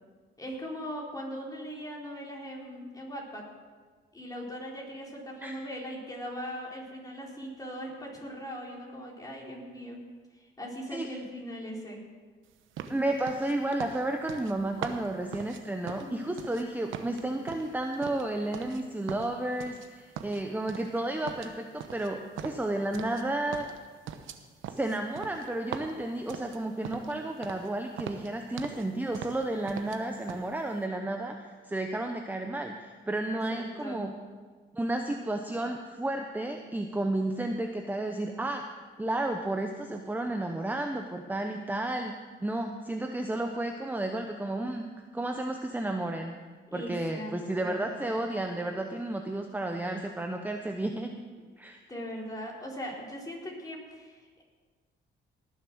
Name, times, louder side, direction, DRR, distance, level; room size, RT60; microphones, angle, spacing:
voice 1, 0.4-3.4 4.1-10.0 10.6-12.0 16.0-16.3 25.2-25.3 33.8-34.0 46.7-47.9 51.9-54.4, equal, 20° left, -2 dB, 4.1 m, -40 dB
sound 1, 12.8-16.6 16.9-18.8 19.1-19.9 20.2-21.0 21.3-23.3 23.5-27.2 27.4-27.7 28.0-28.9 29.1-30.0 30.3-30.5, right 8 dB, 85° right, 1.0 m, -41 dB
voice 2, 12.9-23.7 24.7-34.1 34.7-38.6 39.0-44.9 45.1-46.3 46.7-51.2 51.6-51.8, right 1 dB, 10° right, 4 dB, 0.9 m, -32 dB
19.0 x 7.4 x 6.2 m, 1.5 s
cardioid pair, 90°, 20 cm